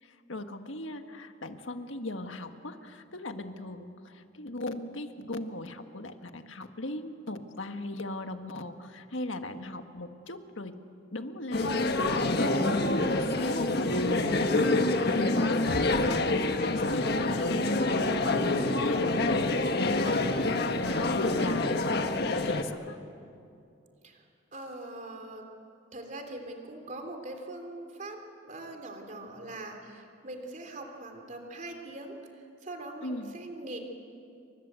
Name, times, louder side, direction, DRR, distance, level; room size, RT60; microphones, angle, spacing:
voice 1, 0.0-10.8 11.1-14.5 15.0-23.0 33.0-33.3, left 1 dB, 80° left, 7 dB, 1.7 m, -38 dB
sound 1, 11.5-22.6, left 2 dB, 55° left, 1.4 m, -27 dB
voice 2, 24.5-25.4 25.9-28.2 28.4-33.8, right 2 dB, 40° right, 4 dB, 3.4 m, -42 dB
29.0 x 25.0 x 8.3 m, 2.5 s
head